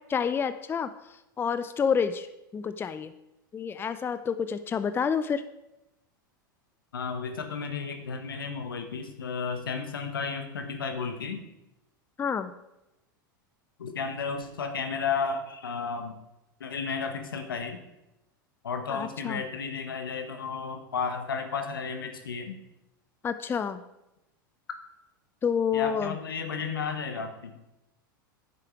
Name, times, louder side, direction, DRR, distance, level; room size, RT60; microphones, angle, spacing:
voice 1, 0.1-0.9 1.4-2.3 2.5-3.1 3.5-5.4 12.2-12.5 18.9-19.4 23.2-23.8 25.4-26.2, left 6 dB, 20° left, 11 dB, 0.5 m, -28 dB
voice 2, 6.9-11.4 13.8-16.2 16.6-17.8 18.6-22.5 25.7-27.6, left 5 dB, 85° left, 6 dB, 1.4 m, -33 dB
9.9 x 7.7 x 4.7 m, 0.91 s
hypercardioid pair, 95°, 11 cm